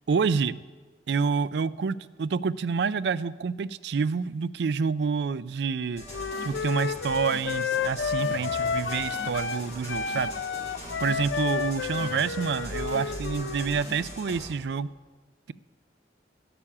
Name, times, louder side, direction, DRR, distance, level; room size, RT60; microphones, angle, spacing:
voice 1, 0.1-0.6 1.1-6.0 6.4-10.3 11.0-14.9, right 5 dB, 65° right, 16 dB, 0.4 m, -28 dB
sound 1, 5.9-14.5, left 1 dB, 40° left, 5.2 m, -40 dB
Wind instrument woodwind instrument, 6.1-9.6 9.9-13.7, left 6 dB, 70° left, 0.5 m, -31 dB
12.5 x 6.9 x 8.5 m, 1.4 s
head